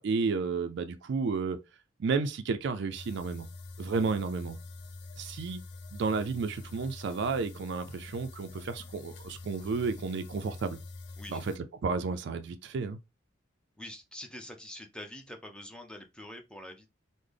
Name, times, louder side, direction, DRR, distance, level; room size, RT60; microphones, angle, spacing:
voice 1, 0.0-1.6 2.0-3.5 3.8-4.6 5.2-5.6 5.9-10.8 11.3-11.5 11.8-13.0, right 4 dB, 65° right, 0.4 m, -32 dB
sound 1, 2.9-11.6, left 3 dB, 60° left, 0.5 m, -46 dB
voice 2, 13.8-16.9, left 1 dB, 5° left, 0.5 m, -45 dB
3.7 x 2.1 x 3.2 m
head